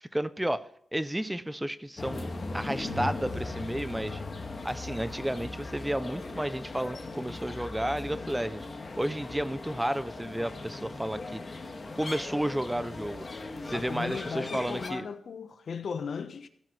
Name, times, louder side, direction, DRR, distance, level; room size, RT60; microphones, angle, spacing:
voice 1, 0.0-2.3 2.5-4.2 4.6-8.7 9.0-11.4 11.9-13.2 13.6-15.1, right 1 dB, 5° right, 0.4 m, -32 dB
sound 1, 2.0-14.9, left 3 dB, 35° left, 1.9 m, -38 dB
voice 2, 13.7-16.5, left 6 dB, 60° left, 1.0 m, -36 dB
17.0 x 9.7 x 3.2 m
wide cardioid pair, 165°, 0 cm